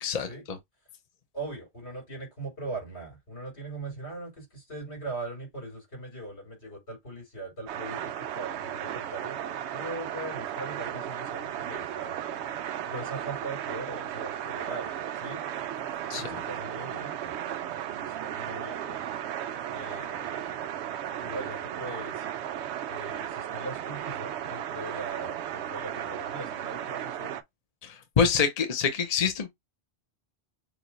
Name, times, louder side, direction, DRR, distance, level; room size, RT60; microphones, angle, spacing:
voice 1, 0.0-0.6 16.1-16.2 27.8-29.5, left 6 dB, 40° left, 0.8 m, -26 dB
voice 2, 1.3-9.4 9.7-12.2 12.9-15.4 16.2-17.4 18.0-19.2 19.7-20.6 21.2-22.3 22.9-27.4, right 2 dB, 80° left, 4.1 m, -40 dB
sound 1, 7.7-27.4, right 10 dB, 90° right, 0.9 m, -35 dB
6.8 x 2.3 x 3.1 m
omnidirectional pair, 1.1 m